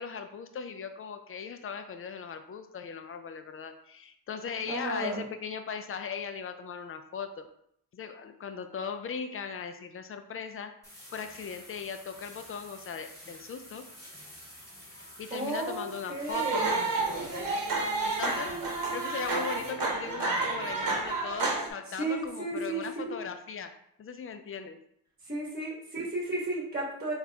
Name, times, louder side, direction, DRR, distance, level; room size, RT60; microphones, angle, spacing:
voice 1, 0.0-7.5 7.9-10.7 11.1-13.9 14.8-16.7 18.0-23.7 24.0-24.8, left 6 dB, 40° left, 8 dB, 0.4 m, -38 dB
voice 2, 4.7-5.2 15.3-16.7 22.0-23.1 25.3-27.1, right 2 dB, 25° right, -4 dB, 1.3 m, -33 dB
sound 1, 10.8-19.7, equal, 10° left, 1.4 m, -50 dB
sound 2, 16.3-21.7, right 3 dB, 70° right, 0.9 m, -30 dB
4.1 x 2.4 x 3.4 m, 0.71 s
wide cardioid pair, 115°, 35 cm